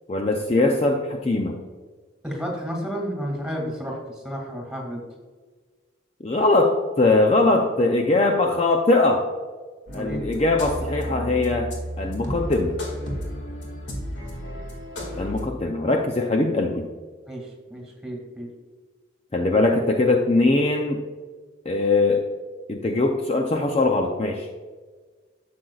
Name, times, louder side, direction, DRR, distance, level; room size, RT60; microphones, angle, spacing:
voice 1, 0.1-1.6 6.2-9.3 9.9-12.8 15.1-16.9 19.3-21.0 21.7-22.2 22.7-24.5, left 2 dB, 30° left, 2 dB, 0.5 m, -21 dB
voice 2, 2.2-5.0 9.9-10.2 17.3-18.5, equal, 5° right, -1 dB, 2.1 m, -32 dB
sound 1, 9.9-15.4, equal, 70° left, 2.1 m, -32 dB
11.5 x 7.7 x 2.4 m, 1.5 s
head